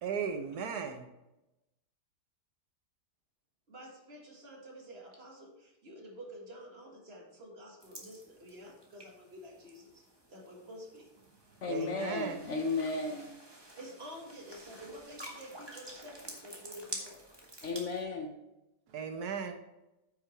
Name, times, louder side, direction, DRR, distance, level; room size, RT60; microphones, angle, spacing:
voice 1, 0.0-1.1 11.7-12.4 18.9-19.6, right 6 dB, 70° right, 6 dB, 1.3 m, -36 dB
voice 2, 3.7-10.0 10.3-11.1 11.7-12.2 13.8-17.2, equal, 40° right, -1 dB, 2.0 m, -49 dB
sound 1, 7.8-18.0, right 1 dB, 15° right, 1.3 m, -49 dB
voice 3, 11.6-13.4 17.6-18.3, left 3 dB, 55° left, 4 dB, 0.9 m, -34 dB
9.2 x 5.8 x 4.4 m, 0.95 s
omnidirectional pair, 1.8 m